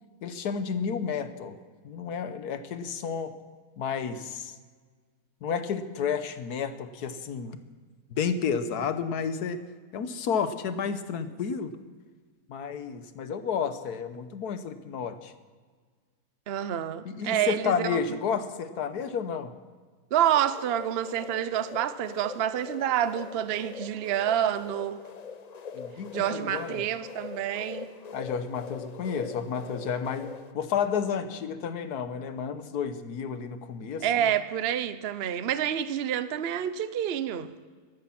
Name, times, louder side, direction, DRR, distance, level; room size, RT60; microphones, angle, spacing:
voice 1, 0.2-1.6 1.8-3.3 3.8-4.5 5.4-7.6 8.1-9.6 9.9-11.8 12.5-15.3 17.0-19.5 25.7-26.9 28.1-34.3, left 6 dB, 80° left, 1.5 m, -31 dB
voice 2, 16.5-18.2 20.1-25.0 26.1-27.9 34.0-37.5, right 10 dB, 50° right, 0.8 m, -28 dB
sound 1, 20.3-30.5, left 6 dB, 60° left, 0.4 m, -42 dB
13.0 x 13.0 x 5.9 m
omnidirectional pair, 1.6 m